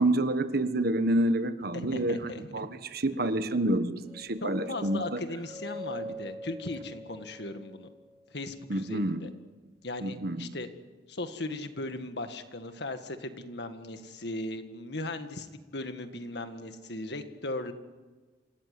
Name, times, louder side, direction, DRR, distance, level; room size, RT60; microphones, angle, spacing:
voice 1, 0.0-5.2 8.7-9.2 10.0-10.5, right 1 dB, 55° right, 11 dB, 1.3 m, -28 dB
voice 2, 1.9-2.4 4.4-7.9 8.3-9.3 9.8-10.7 11.1-17.7, left 2 dB, 65° left, 8 dB, 1.9 m, -38 dB
sound 1, 4.1-8.2, left 1 dB, ahead, 6.7 m, -42 dB
26.5 x 17.0 x 9.7 m, 1.3 s
head